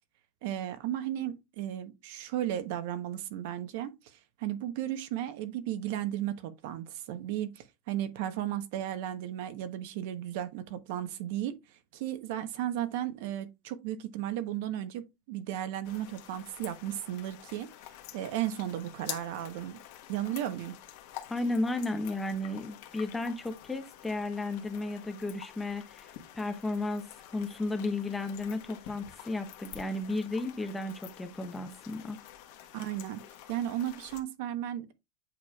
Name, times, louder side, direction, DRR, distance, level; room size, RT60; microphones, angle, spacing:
voice 1, 0.4-11.6 11.9-17.7 18.1-19.8 20.1-20.7 32.7-33.2 33.5-34.9, right 12 dB, 55° right, 0.9 m, -35 dB
sound 1, 15.8-34.2, left 12 dB, 55° left, 1.3 m, -48 dB
voice 2, 21.3-32.2, left 2 dB, 5° left, 0.7 m, -34 dB
8.0 x 4.9 x 2.4 m
supercardioid pair, 175°, 0 cm